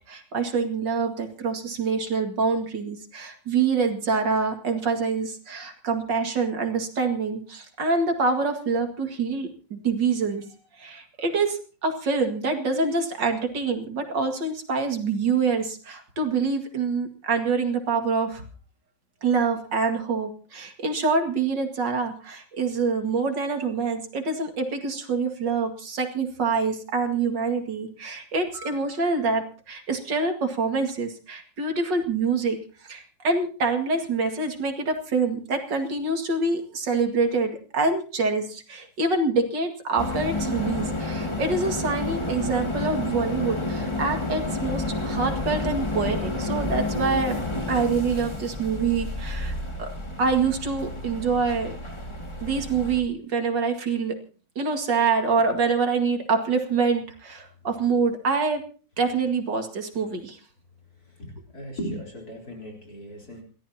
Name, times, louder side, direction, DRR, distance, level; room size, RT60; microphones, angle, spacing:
voice 1, 0.1-10.4 10.8-18.4 19.2-47.4 47.7-49.9 50.2-51.7 52.4-54.1 54.6-58.6 59.0-60.4, right 4 dB, 70° right, 5 dB, 2.7 m, -26 dB
sound 1, 40.0-53.0, left 2 dB, 15° left, 2.0 m, -30 dB
voice 2, 61.0-63.4, equal, 50° left, 0 dB, 4.5 m, -37 dB
29.0 x 13.0 x 2.8 m, 0.39 s
omnidirectional pair, 2.0 m